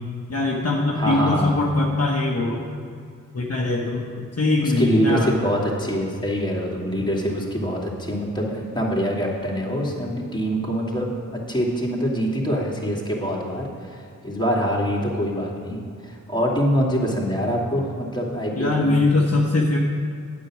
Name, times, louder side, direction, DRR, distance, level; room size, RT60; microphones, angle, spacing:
voice 1, 0.3-2.7 3.3-5.3 18.6-19.8, left 2 dB, 45° left, -2 dB, 1.2 m, -22 dB
voice 2, 0.9-1.5 4.6-19.0, equal, 15° left, -4 dB, 2.6 m, -24 dB
8.9 x 7.6 x 6.2 m, 2.3 s
cardioid pair, 45°, 34 cm